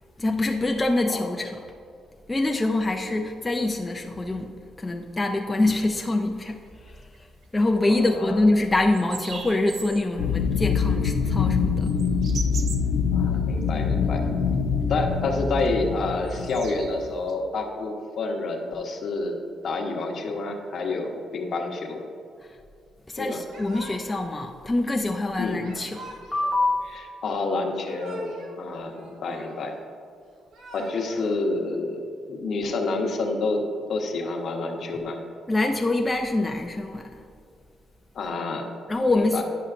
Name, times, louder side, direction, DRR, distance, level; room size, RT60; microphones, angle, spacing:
voice 1, 0.2-1.6 2.3-6.6 7.5-11.9 23.1-26.9 35.5-37.2 38.9-39.4, left 2 dB, 20° left, 2 dB, 0.4 m, -25 dB
sound 1, 6.3-7.6 7.9-8.0 8.4-8.5 8.9-10.1 10.4-13.7 14.0-14.5 14.8-15.1 15.5-17.3, right 5 dB, 60° right, 0.5 m, -40 dB
voice 2, 7.9-8.4 13.1-14.3 14.9-19.4 19.6-22.0 23.2-23.4 25.4-25.6 26.9-29.7 30.7-32.0 32.3-35.2 38.1-38.7 39.1-39.4, left 3 dB, 60° left, 2 dB, 0.9 m, -29 dB
sound 2, 10.2-16.9, left 6 dB, 85° left, 0.5 m, -24 dB
Yell / Crying sobbing, 23.5-24.3 25.6-26.6 27.6-28.6 28.8-29.8 30.4-31.3, right 1 dB, 85° right, 1.2 m, -44 dB
9.9 x 5.5 x 2.5 m, 2.4 s
cardioid pair, 95°, 0 cm